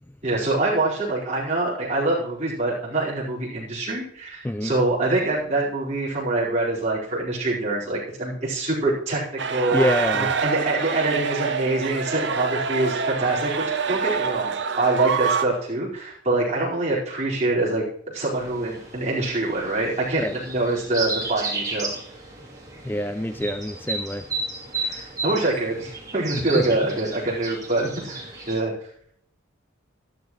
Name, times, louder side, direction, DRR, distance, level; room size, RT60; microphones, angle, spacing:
voice 1, 0.2-9.9 10.1-13.5 13.9-17.8 18.1-22.0 24.7-28.7, right 2 dB, 35° right, -6 dB, 4.5 m, -25 dB
sound 1, 9.4-15.4, right 5 dB, 60° right, 0.8 m, -26 dB
voice 2, 9.7-10.3 20.2-20.4 22.8-24.2 26.5-26.7, left 1 dB, 10° left, 9 dB, 0.3 m, -26 dB
sound 2, 18.3-28.6, right 3 dB, 20° right, 2.9 m, -34 dB
13.5 x 12.0 x 3.1 m, 0.65 s
head